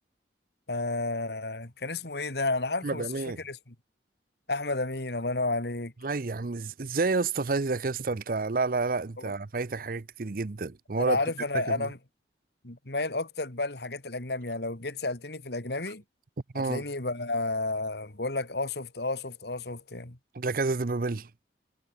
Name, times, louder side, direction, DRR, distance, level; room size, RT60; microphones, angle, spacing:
voice 1, 0.7-3.1 3.4-3.7 4.5-5.9 11.0-12.0 12.6-16.0 16.5-20.2, left 2 dB, 65° left, 2.5 m, -31 dB
voice 2, 2.8-3.4 6.0-11.2 11.5-11.9 16.5-16.8 20.3-21.3, right 3 dB, 50° right, 0.6 m, -29 dB
head